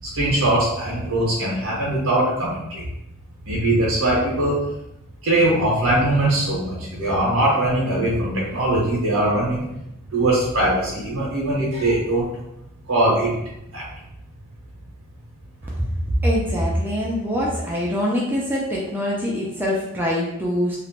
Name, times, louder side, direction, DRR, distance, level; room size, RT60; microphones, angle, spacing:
voice 1, 0.0-2.8 3.4-4.6 5.2-9.7 10.1-12.3 12.9-13.3 13.7-13.8, right 1 dB, 70° right, -5 dB, 0.7 m, -21 dB
voice 2, 15.8-20.8, equal, 10° right, -4 dB, 0.4 m, -23 dB
2.9 x 2.1 x 2.8 m, 0.85 s
head